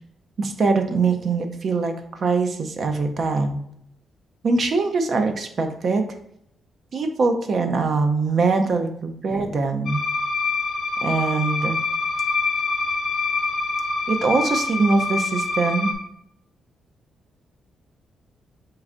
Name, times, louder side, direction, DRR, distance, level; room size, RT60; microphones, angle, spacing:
voice 1, 0.4-3.6 4.4-6.1 6.9-10.0 11.0-11.8 14.1-15.9, right 4 dB, 55° right, 5 dB, 0.5 m, -22 dB
sound 1, 9.9-15.9, left 4 dB, 75° left, 0.8 m, -25 dB
4.6 x 4.2 x 2.5 m, 0.73 s
cardioid pair, 80°, 0 cm